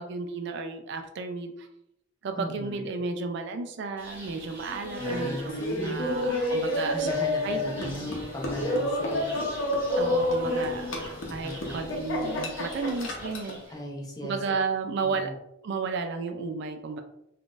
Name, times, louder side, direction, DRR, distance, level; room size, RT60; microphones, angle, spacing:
voice 1, 0.0-1.7 2.2-7.1 7.4-8.2 10.0-13.6 14.2-15.3 15.6-17.0, right 4 dB, 65° right, 6 dB, 0.4 m, -33 dB
voice 2, 2.3-2.8 5.0-6.5 6.9-9.4 11.4-12.0 13.7-14.5 15.0-15.3, equal, 20° left, -1 dB, 0.6 m, -38 dB
Insect, 4.0-13.8, equal, 10° right, 0.9 m, -41 dB
Laughter, 5.5-13.6, left 1 dB, 75° left, 0.8 m, -29 dB
3.7 x 2.4 x 2.4 m, 0.79 s
head